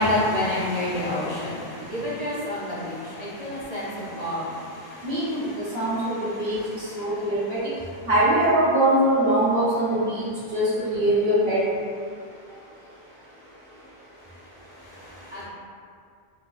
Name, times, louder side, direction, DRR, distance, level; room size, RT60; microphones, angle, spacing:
voice 1, 0.0-7.9 14.8-15.4, left 1 dB, 10° right, -9 dB, 0.5 m, -30 dB
voice 2, 5.0-5.4 5.7-6.6 6.9-7.6 8.1-10.2 10.5-10.6 10.9-11.6, right 1 dB, 60° right, -10 dB, 1.4 m, -22 dB
4.3 x 2.5 x 2.5 m, 2.2 s
omnidirectional pair, 1.1 m